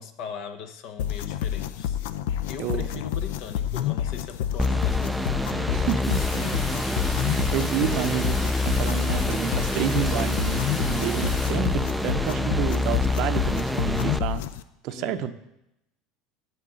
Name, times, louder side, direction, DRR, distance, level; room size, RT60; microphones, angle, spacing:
voice 1, 0.0-2.0 2.5-7.5 14.9-15.3, left 7 dB, 60° left, 9 dB, 0.9 m, -40 dB
sound 1, 1.0-14.6, left 10 dB, 80° left, 0.4 m, -29 dB
sound 2, 4.6-14.2, left 1 dB, ahead, 0.3 m, -27 dB
voice 2, 5.7-6.2 7.2-14.4 14.8-15.3, right 11 dB, 55° right, 11 dB, 0.5 m, -29 dB
sound 3, 6.0-11.5, left 2 dB, 20° left, 4.1 m, -37 dB
12.5 x 8.3 x 3.7 m, 0.87 s
supercardioid pair, 140°, 0 cm